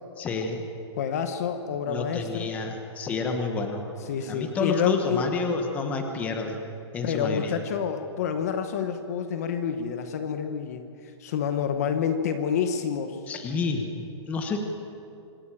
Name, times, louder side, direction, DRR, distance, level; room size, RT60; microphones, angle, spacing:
voice 1, 0.2-0.7 1.9-3.8 4.2-6.6 6.9-7.6 13.3-13.9 14.3-14.6, left 4 dB, 10° left, 4 dB, 1.2 m, -29 dB
voice 2, 1.0-2.5 4.1-5.3 7.0-13.2, left 7 dB, 35° left, 8 dB, 1.0 m, -28 dB
26.0 x 12.5 x 9.0 m, 2.6 s
hypercardioid pair, 180°, 15 cm